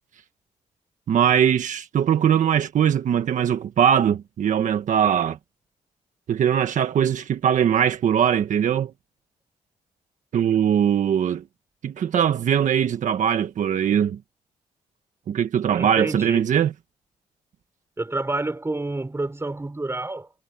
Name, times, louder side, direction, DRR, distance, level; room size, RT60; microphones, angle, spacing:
voice 1, 1.1-5.4 6.3-8.9 10.3-11.4 11.8-14.2 15.3-16.7, right 9 dB, 70° right, 1.5 m, -21 dB
voice 2, 15.8-16.5 18.0-20.3, right 2 dB, 20° right, 5.7 m, -28 dB
cardioid pair, 75°, 13 cm